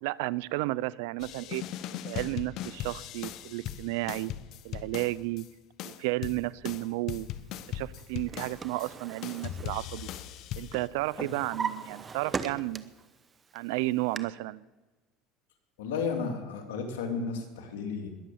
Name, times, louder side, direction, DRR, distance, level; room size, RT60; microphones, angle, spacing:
voice 1, 0.0-1.6 2.0-4.3 4.6-5.4 5.8-7.3 7.7-10.1 10.6-12.9 13.5-14.6, right 20 dB, 80° right, 20 dB, 0.4 m, -32 dB
sound 1, 1.2-5.5 5.8-8.9 9.2-10.9, left 11 dB, 60° left, 0.8 m, -39 dB
Drawer open or close, 8.0-10.4 10.7-13.1 13.5-14.2, right 6 dB, 25° right, 0.9 m, -38 dB
voice 2, 15.8-18.1, left 5 dB, 90° left, 3 dB, 2.7 m, -33 dB
21.0 x 7.5 x 7.0 m, 1.2 s
supercardioid pair, 105°, 0 cm